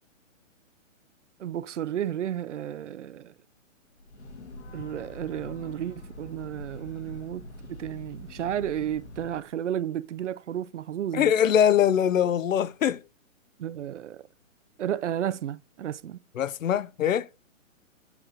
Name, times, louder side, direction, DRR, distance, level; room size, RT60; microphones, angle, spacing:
voice 1, 1.4-3.3 4.7-11.3 13.6-14.2 14.8-16.2, right 10 dB, 60° right, 0.5 m, -32 dB
Breathing / Train, 3.9-9.5, left 1 dB, 55° left, 1.9 m, -44 dB
voice 2, 11.1-13.0 16.4-17.3, left 9 dB, 70° left, 0.7 m, -22 dB
7.9 x 7.5 x 2.7 m
hypercardioid pair, 180°, 40 cm